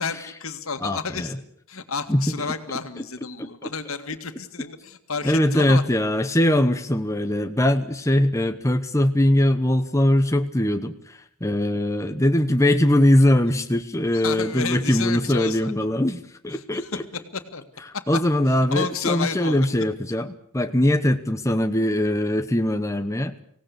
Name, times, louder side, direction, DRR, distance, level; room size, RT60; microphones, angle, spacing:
voice 1, 0.0-1.3 1.7-5.8 14.1-15.7 16.5-17.7 17.9-18.2 18.7-19.7, left 5 dB, 65° left, 8 dB, 2.1 m, -31 dB
voice 2, 0.8-1.3 2.1-2.2 3.4-3.7 5.2-17.0 18.1-23.3, left 1 dB, 15° left, 6 dB, 1.0 m, -21 dB
24.5 x 18.0 x 8.5 m, 0.68 s
head